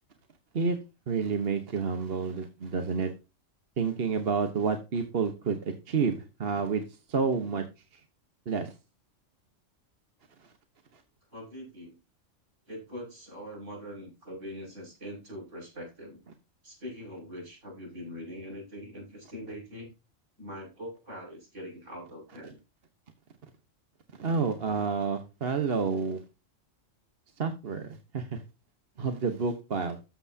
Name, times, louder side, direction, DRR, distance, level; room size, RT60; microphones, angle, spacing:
voice 1, 1.1-3.1 3.8-6.8 7.1-7.6 8.5-8.7 24.2-26.2 27.4-28.4 29.0-30.0, right 5 dB, 50° right, 6 dB, 1.3 m, -29 dB
voice 2, 11.3-12.0 12.7-16.2 16.6-19.9 20.4-22.6, equal, 70° right, -1 dB, 6.3 m, -42 dB
13.0 x 7.8 x 2.8 m, 0.28 s
omnidirectional pair, 1.3 m